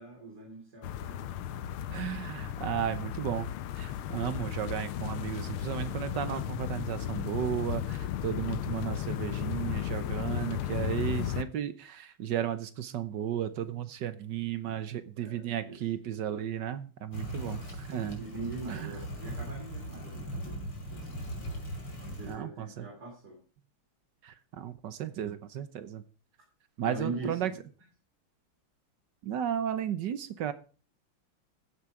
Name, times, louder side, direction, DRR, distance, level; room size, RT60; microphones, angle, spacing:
voice 1, 0.0-1.9 14.7-14.8 15.2-15.8 17.3-17.6 18.0-21.3 22.0-23.4 26.8-27.6, right 3 dB, 50° right, -1 dB, 3.9 m, -42 dB
sound 1, 0.8-11.4, left 11 dB, 85° left, 1.6 m, -35 dB
voice 2, 1.9-3.5 3.8-18.2 18.7-19.0 22.3-22.9 24.2-26.0 26.8-27.5 29.2-30.5, right 10 dB, 65° right, 13 dB, 1.4 m, -34 dB
sound 2, 17.1-22.4, equal, 55° left, 5.1 m, -39 dB
15.5 x 7.7 x 4.9 m, 0.37 s
omnidirectional pair, 2.3 m